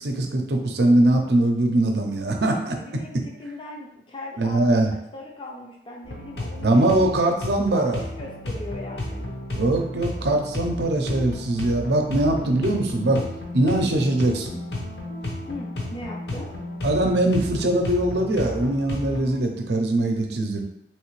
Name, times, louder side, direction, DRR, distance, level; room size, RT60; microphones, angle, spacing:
voice 1, 0.0-2.8 4.4-4.9 6.6-8.0 9.5-13.3 13.5-14.6 16.8-20.6, right 1 dB, 75° right, 3 dB, 0.6 m, -22 dB
voice 2, 2.7-4.6 5.1-7.4 7.7-9.2 15.5-16.5, left 2 dB, 30° left, 0 dB, 0.4 m, -39 dB
sound 1, 6.0-19.4, left 1 dB, 70° left, 0.8 m, -33 dB
3.3 x 3.1 x 3.1 m, 0.78 s
head